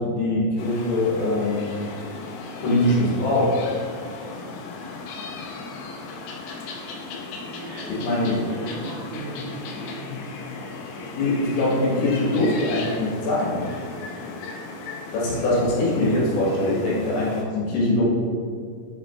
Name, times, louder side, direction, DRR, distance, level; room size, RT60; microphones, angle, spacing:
voice 1, 0.0-1.7 2.6-3.5 8.0-8.4 11.1-13.7 15.1-18.0, left 1 dB, 70° left, -6 dB, 3.6 m, -22 dB
sound 1, 0.6-17.4, left 3 dB, 85° left, 2.3 m, -36 dB
voice 2, 7.4-10.3, right 1 dB, 85° right, -8 dB, 2.1 m, -37 dB
7.4 x 5.7 x 2.4 m, 2.2 s
omnidirectional pair, 5.8 m